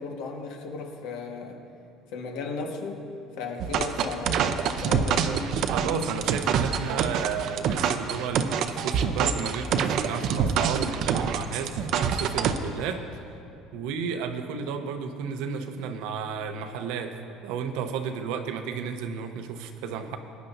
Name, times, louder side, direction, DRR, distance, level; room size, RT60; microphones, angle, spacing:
voice 1, 0.0-1.6 2.1-3.1 3.4-5.4, left 4 dB, 80° left, 2 dB, 1.5 m, -35 dB
sound 1, 3.6-12.6, right 7 dB, 55° right, 0.6 m, -26 dB
voice 2, 5.6-13.3 13.7-20.2, right 6 dB, 80° right, 7 dB, 0.9 m, -32 dB
21.5 x 10.5 x 2.7 m, 2.6 s
cardioid pair, 145°, 0 cm